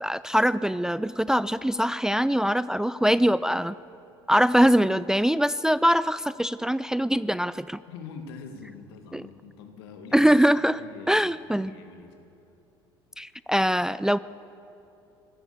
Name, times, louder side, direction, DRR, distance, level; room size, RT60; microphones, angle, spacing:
voice 1, 0.0-3.8 4.3-7.8 9.1-9.2 10.1-10.8 11.1-11.7 13.2-14.2, equal, 5° right, 17 dB, 0.4 m, -23 dB
voice 2, 7.9-10.3 10.8-12.1, left 5 dB, 75° left, 5 dB, 2.1 m, -44 dB
25.0 x 15.0 x 7.0 m, 2.8 s
hypercardioid pair, 65°, 13 cm